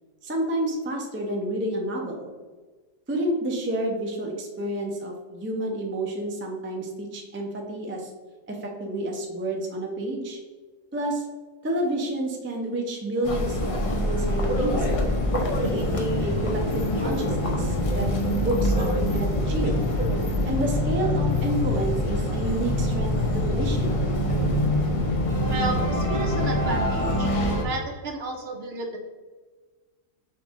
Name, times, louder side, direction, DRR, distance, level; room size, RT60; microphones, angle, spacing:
voice 1, 0.2-2.3 3.1-8.1 8.5-10.4 10.9-11.3 11.6-15.1 15.6-18.1 18.4-19.8 20.5-24.0, right 1 dB, 20° right, 0 dB, 0.3 m, -29 dB
sound 1, 13.2-27.6, left 1 dB, 40° left, 0.4 m, -24 dB
voice 2, 25.5-27.3 27.6-29.0, right 2 dB, 60° right, 2 dB, 0.7 m, -32 dB
5.1 x 2.6 x 3.6 m, 1.3 s
omnidirectional pair, 1.4 m